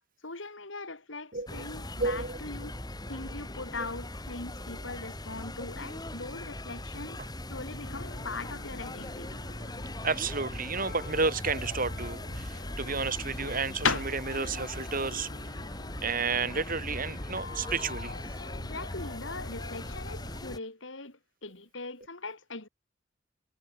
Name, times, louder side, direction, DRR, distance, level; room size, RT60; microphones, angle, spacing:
voice 1, 0.2-2.8 3.1-7.2 7.5-9.4 18.6-22.7, left 3 dB, 65° left, 3.4 m, -41 dB
sound 1, 1.5-20.6, left 1 dB, 20° left, 3.1 m, -40 dB
voice 2, 2.0-2.4 10.0-15.3 16.0-18.1, right 4 dB, 45° right, 3.6 m, -31 dB
sound 2, 7.8-20.4, left 1 dB, 50° left, 4.0 m, -44 dB
sound 3, 13.7-17.6, left 5 dB, 85° left, 3.7 m, -35 dB
head